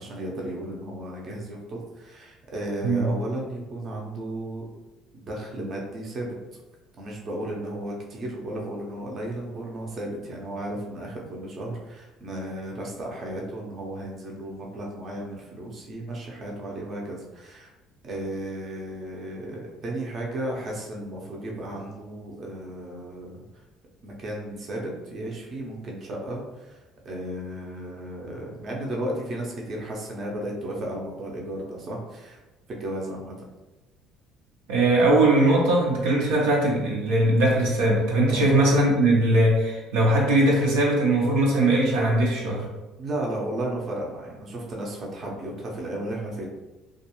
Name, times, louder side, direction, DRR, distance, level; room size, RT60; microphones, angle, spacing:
voice 1, 0.0-4.7 5.1-6.3 7.0-17.7 18.0-23.4 24.0-32.4 32.7-33.3 38.3-38.6 43.0-46.5, right 1 dB, 45° right, -2 dB, 0.6 m, -34 dB
voice 2, 34.7-42.7, right 1 dB, 90° right, -3 dB, 0.7 m, -20 dB
2.4 x 2.3 x 2.9 m, 1.1 s
supercardioid pair, 90°, 0 cm